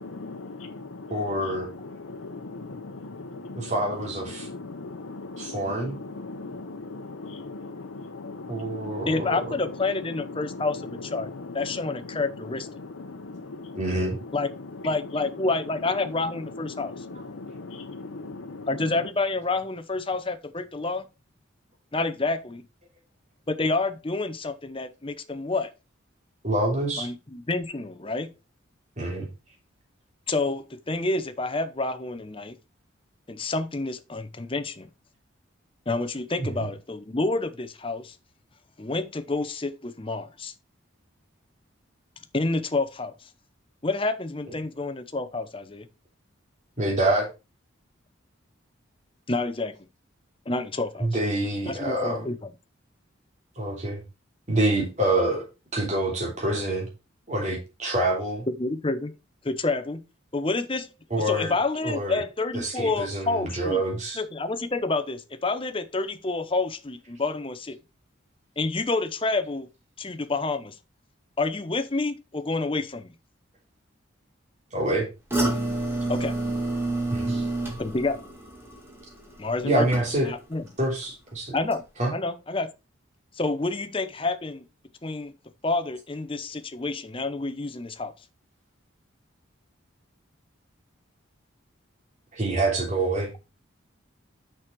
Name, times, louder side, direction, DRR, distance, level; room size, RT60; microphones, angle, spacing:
voice 1, 0.2-3.7 4.3-9.1 10.4-10.7 11.3-11.5 12.8-13.8 16.7-18.7, left 3 dB, 85° left, 0.8 m, -39 dB
voice 2, 1.1-1.7 3.5-4.5 5.4-6.0 8.5-9.4 13.7-14.2 26.4-27.1 29.0-29.3 36.4-36.5 46.8-47.3 51.0-52.2 53.6-54.0 54.5-55.4 55.7-56.9 57.3-58.4 61.1-61.5 61.8-62.2 62.5-64.2 74.7-75.1 77.1-77.5 79.6-80.3 80.8-81.6 82.0-82.1 92.3-93.3, right 1 dB, 35° right, 3.3 m, -26 dB
voice 3, 9.1-11.3 11.5-12.7 14.3-14.5 14.8-17.0 18.7-21.1 21.9-22.6 23.5-25.7 27.0-28.3 30.3-32.5 33.3-34.9 35.9-38.1 38.8-40.5 42.3-43.1 43.8-45.9 49.3-49.8 50.5-51.1 51.7-52.5 58.6-59.1 59.4-60.0 60.3-63.8 64.2-67.8 68.6-69.7 70.0-70.7 71.4-73.1 76.1-76.4 77.8-78.2 79.4-79.9 80.2-80.6 81.5-81.8 82.1-82.7 83.3-84.6 85.0-85.3 85.6-88.1, left 3 dB, 25° left, 0.7 m, -28 dB
sound 1, 75.3-80.5 80.8-81.3 81.7-81.8, right 2 dB, 10° right, 2.0 m, -29 dB
6.3 x 6.1 x 4.6 m
head